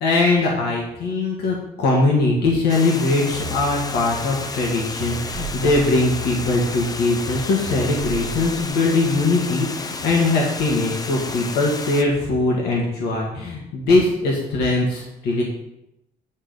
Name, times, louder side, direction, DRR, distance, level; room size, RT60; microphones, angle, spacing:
voice 1, 0.0-15.4, left 2 dB, 75° left, -2 dB, 2.0 m, -21 dB
Water, 2.7-12.0, left 3 dB, 20° left, 0.7 m, -32 dB
sound 1, 3.3-8.7, right 3 dB, 70° right, 1.2 m, -35 dB
9.7 x 3.9 x 6.7 m, 0.86 s
cardioid pair, 110°, 17 cm